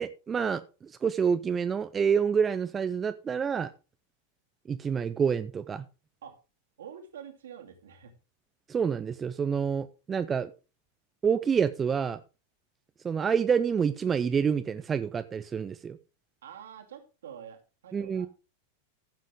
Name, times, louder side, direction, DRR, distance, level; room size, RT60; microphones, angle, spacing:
voice 1, 0.0-3.7 4.7-5.8 8.7-10.5 11.2-12.2 13.0-16.0 17.9-18.3, right 6 dB, 20° right, 11 dB, 0.6 m, -28 dB
voice 2, 6.8-8.1 16.4-18.3, right 8 dB, 60° right, 4 dB, 2.4 m, -46 dB
15.0 x 7.6 x 3.5 m, 0.31 s
figure-of-eight pair, 90°, 0 cm